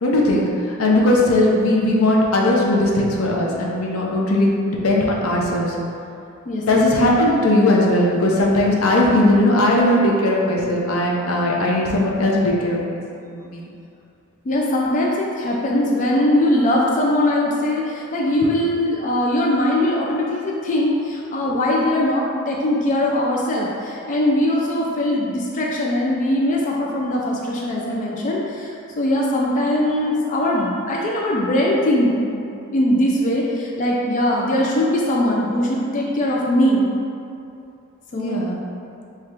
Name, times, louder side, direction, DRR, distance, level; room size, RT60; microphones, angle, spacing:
voice 1, 0.0-5.8 6.6-12.8 13.2-13.6 18.4-18.5 38.1-38.6, left 1 dB, 80° left, -2 dB, 0.6 m, -18 dB
voice 2, 6.5-7.0 14.5-32.4 32.7-36.9 38.1-38.5, left 1 dB, 35° left, -3 dB, 0.4 m, -21 dB
3.2 x 2.4 x 4.4 m, 2.6 s
head